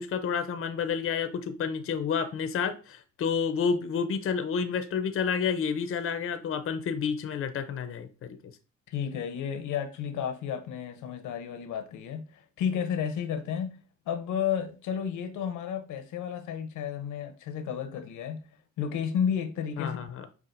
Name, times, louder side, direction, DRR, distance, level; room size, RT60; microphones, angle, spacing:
voice 1, 0.0-8.1 19.8-20.3, left 6 dB, 45° left, 0.5 m, -30 dB
voice 2, 8.9-13.7 14.1-18.4 18.8-20.0, left 8 dB, 80° left, 0.7 m, -32 dB
5.5 x 2.4 x 2.5 m
cardioid pair, 90°, 30 cm